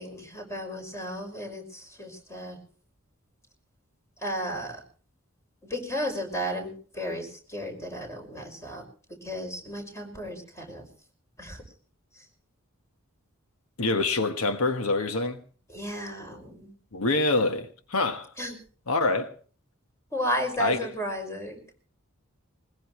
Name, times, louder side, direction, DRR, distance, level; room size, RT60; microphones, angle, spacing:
voice 1, 0.0-2.6 4.2-4.8 5.6-8.8 9.2-10.9 11.4-11.6 15.7-16.7 18.4-18.6 20.1-21.6, equal, 15° left, 5.8 m, -34 dB
voice 2, 13.8-15.4 16.9-18.3 18.9-19.3 20.6-20.9, left 3 dB, 85° left, 1.4 m, -25 dB
21.5 x 20.5 x 3.2 m
head